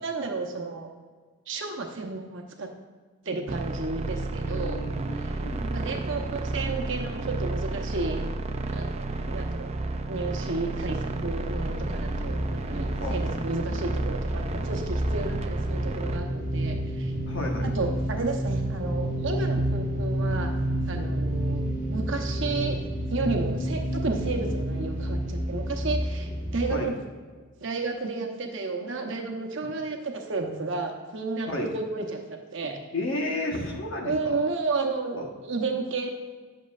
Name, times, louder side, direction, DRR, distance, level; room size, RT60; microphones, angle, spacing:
voice 1, 0.0-0.9 1.5-2.7 3.2-4.8 5.2-5.3 5.7-8.2 8.7-9.7 10.1-17.1 17.6-20.5 20.9-22.8 23.1-26.9 27.6-32.8 34.0-36.1, right 3 dB, 55° right, 3 dB, 0.9 m, -32 dB
sound 1, 3.5-16.2, right 2 dB, 30° right, 0.3 m, -31 dB
voice 2, 4.4-5.8 9.2-9.4 12.9-13.2 17.3-17.7 26.7-26.9 31.5-31.7 32.9-34.4 35.1-35.2, left 1 dB, 60° left, 0 dB, 1.2 m, -33 dB
sound 2, 11.0-26.7, equal, 35° left, 1.6 m, -33 dB
sound 3, 14.4-26.6, right 1 dB, 10° right, 0.9 m, -31 dB
9.5 x 6.5 x 2.4 m, 1.4 s
head